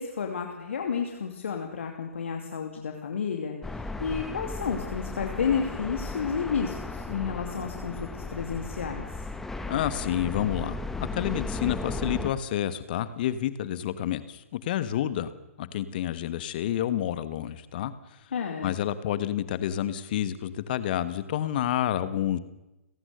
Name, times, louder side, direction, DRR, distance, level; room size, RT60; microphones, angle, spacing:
voice 1, 0.0-9.0 18.3-18.8, left 6 dB, 55° left, 3 dB, 2.7 m, -31 dB
sound 1, 3.6-12.3, left 2 dB, 5° left, 1.5 m, -35 dB
voice 2, 9.7-10.8 11.1-15.3 15.6-17.9 18.6-22.4, left 11 dB, 40° left, 14 dB, 1.3 m, -29 dB
30.0 x 17.5 x 6.7 m, 1.0 s
figure-of-eight pair, 125°, 8 cm